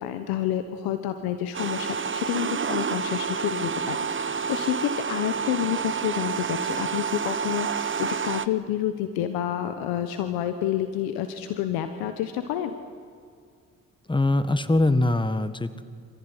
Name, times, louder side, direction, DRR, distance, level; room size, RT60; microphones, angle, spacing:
voice 1, 0.0-12.7, left 11 dB, 90° left, 9 dB, 1.2 m, -29 dB
sound 1, 1.5-8.5, right 6 dB, 35° right, 1.1 m, -29 dB
voice 2, 14.1-15.8, left 2 dB, 15° left, 12 dB, 1.7 m, -22 dB
27.0 x 15.5 x 9.8 m, 2.2 s
supercardioid pair, 55°, 35 cm